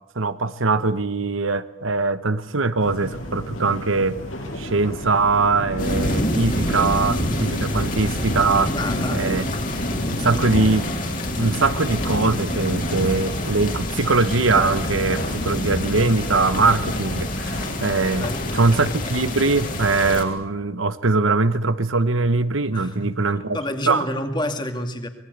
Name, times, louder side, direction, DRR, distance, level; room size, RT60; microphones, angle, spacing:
voice 1, 0.1-4.2 4.6-8.7 9.1-9.4 10.1-10.8 11.4-23.6 23.9-24.1, right 3 dB, 85° right, 13 dB, 1.1 m, -21 dB
sound 1, 2.8-19.0, left 1 dB, 85° left, 7.3 m, -34 dB
sound 2, 5.8-20.2, left 1 dB, 45° left, 3.7 m, -27 dB
voice 2, 8.7-9.5 10.2-10.4 18.2-19.0 22.7-23.1 23.5-25.1, left 1 dB, 20° left, 6 dB, 2.4 m, -29 dB
25.0 x 20.5 x 8.2 m, 0.84 s
head